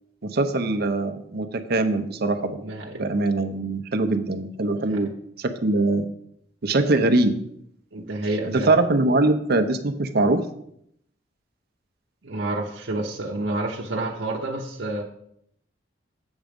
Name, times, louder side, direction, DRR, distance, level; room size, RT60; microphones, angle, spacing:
voice 1, 0.2-2.6 3.0-5.1 5.4-6.1 6.6-7.3 8.5-10.4, right 2 dB, 60° right, 7 dB, 0.7 m, -22 dB
voice 2, 2.6-3.1 4.9-5.0 7.9-8.7 12.2-15.0, right 2 dB, 80° right, -1 dB, 0.9 m, -29 dB
8.1 x 6.1 x 5.2 m, 0.71 s
head